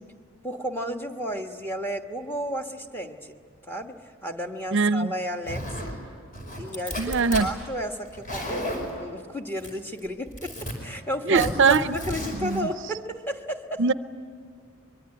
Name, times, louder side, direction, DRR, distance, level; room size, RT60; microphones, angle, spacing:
voice 1, 0.4-3.4 3.7-6.0 6.6-13.8, equal, 10° left, 3 dB, 1.3 m, -33 dB
voice 2, 4.7-5.1 7.0-7.5 11.3-11.8 12.4-12.7 13.8-13.9, right 4 dB, 60° right, 13 dB, 0.6 m, -21 dB
Zipper (clothing), 5.5-6.0 6.3-7.5 8.1-8.9 9.6-10.0 10.3-10.7 11.3-12.6, equal, 40° left, 5.3 m, -33 dB
24.5 x 23.0 x 9.8 m, 2.1 s
head